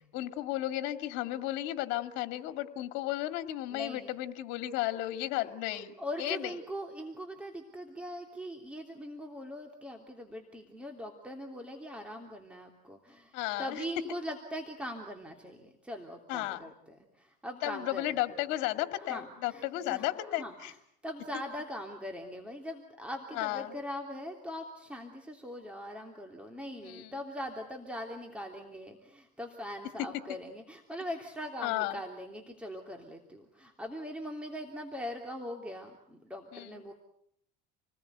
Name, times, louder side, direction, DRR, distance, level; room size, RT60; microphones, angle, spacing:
voice 1, 0.1-5.9 6.2-6.5 13.3-13.8 16.3-16.6 17.6-20.7 23.3-23.7 26.8-27.1 31.6-32.0 36.5-36.8, left 15 dB, 65° left, 8 dB, 2.3 m, -34 dB
voice 2, 3.7-4.1 5.4-5.5 5.7-18.1 19.0-20.8 21.0-36.9, equal, 5° right, 3 dB, 3.2 m, -41 dB
29.0 x 20.0 x 8.2 m, 0.71 s
supercardioid pair, 115°, 20 cm